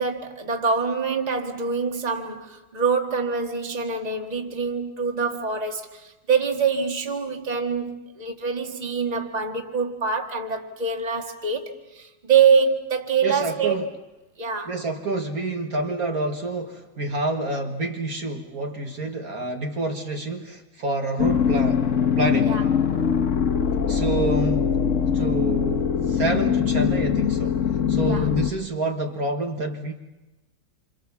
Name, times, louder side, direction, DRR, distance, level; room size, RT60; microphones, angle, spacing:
voice 1, 0.0-13.8 14.4-14.7 22.4-22.6 28.0-28.3, right 5 dB, 20° right, 1.9 m, -25 dB
voice 2, 13.2-13.9 14.7-21.8 22.2-22.6 23.9-24.8 25.1-27.6 27.9-29.9, right 2 dB, 55° right, 1.9 m, -28 dB
sound 1, 21.2-28.5, left 7 dB, 50° left, 1.3 m, -22 dB
28.0 x 27.0 x 7.1 m
omnidirectional pair, 2.0 m